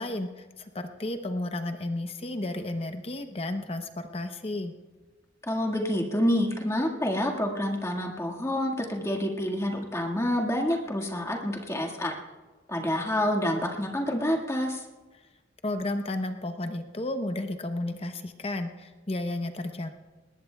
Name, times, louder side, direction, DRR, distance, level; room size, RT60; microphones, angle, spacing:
voice 1, 0.0-4.7 15.6-19.9, left 1 dB, 35° left, 7 dB, 0.8 m, -32 dB
voice 2, 5.5-12.1 12.7-14.8, left 1 dB, 15° left, 1 dB, 1.7 m, -28 dB
21.0 x 19.0 x 2.3 m, 1.3 s
head